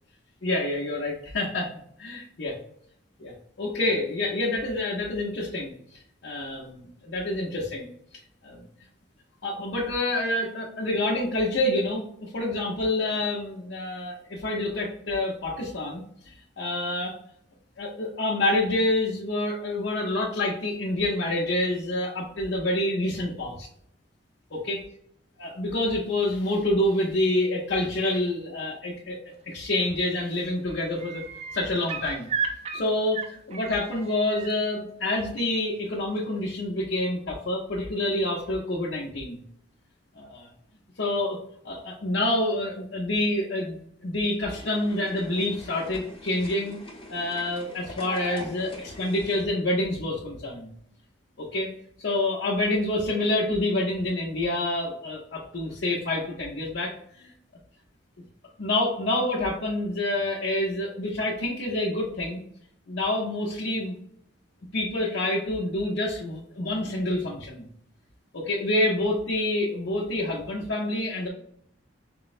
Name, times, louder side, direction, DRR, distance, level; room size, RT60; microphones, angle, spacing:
voice 1, 0.4-1.7 2.0-2.6 3.2-3.3 3.6-7.9 8.4-8.6 9.4-17.2 17.8-23.7 24.5-24.8 25.4-29.2 29.4-31.2 31.5-32.3 32.7-39.4 40.2-40.5 41.0-41.4 41.6-46.8 47.1-50.7 51.4-51.7 52.0-57.3 58.6-62.4 62.9-64.0 64.7-67.7 68.3-71.3, left 1 dB, 65° left, -4 dB, 0.7 m, -27 dB
sound 1, 29.8-30.1 30.4-34.5 36.2-36.3, right 5 dB, 30° right, 0.3 m, -34 dB
sound 2, 44.5-49.4, left 1 dB, 25° left, 0.8 m, -43 dB
4.4 x 2.0 x 2.4 m, 0.69 s
head